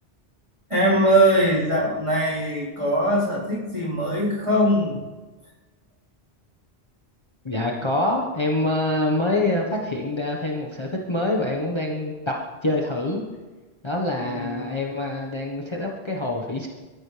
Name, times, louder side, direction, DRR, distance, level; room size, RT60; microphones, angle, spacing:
voice 1, 0.7-5.0 14.2-14.7, right 1 dB, 30° right, -6 dB, 4.2 m, -21 dB
voice 2, 7.4-13.2 13.8-16.7, left 2 dB, 25° left, -1 dB, 1.4 m, -25 dB
23.0 x 14.0 x 3.4 m, 1.3 s
omnidirectional pair, 1.1 m